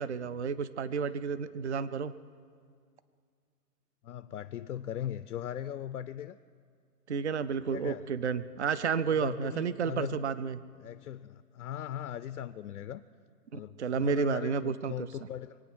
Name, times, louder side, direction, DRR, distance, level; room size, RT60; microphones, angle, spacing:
voice 1, 0.0-2.1 7.1-10.6 13.5-15.1, right 6 dB, 45° right, 16 dB, 0.5 m, -31 dB
voice 2, 4.0-6.4 7.7-8.1 9.1-10.2 10.8-13.0 13.5-15.6, left 10 dB, 65° left, 12 dB, 0.6 m, -39 dB
25.0 x 9.3 x 6.2 m, 2.1 s
hypercardioid pair, 180°, 48 cm